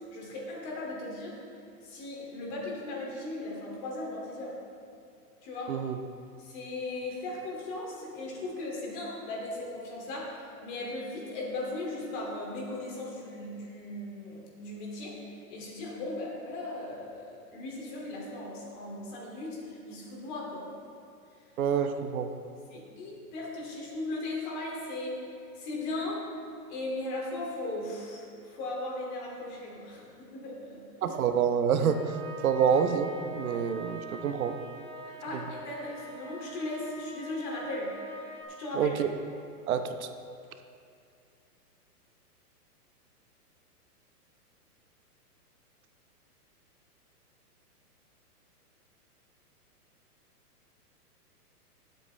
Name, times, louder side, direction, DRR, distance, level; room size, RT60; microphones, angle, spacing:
voice 1, 0.1-1.4 1.8-4.6 5.4-5.8 6.4-20.7 22.7-25.2 25.5-26.3 26.7-30.8 35.0-38.0 38.6-38.9, left 2 dB, 30° left, -3 dB, 2.5 m, -37 dB
voice 2, 21.6-22.3 31.0-32.0 32.4-34.5 38.7-39.1 39.7-39.9, right 7 dB, 60° right, 8 dB, 1.0 m, -27 dB
sound 1, 31.9-38.4, right 2 dB, 5° left, 0.6 m, -44 dB
18.5 x 8.2 x 3.3 m, 2.5 s
hypercardioid pair, 160°, 47 cm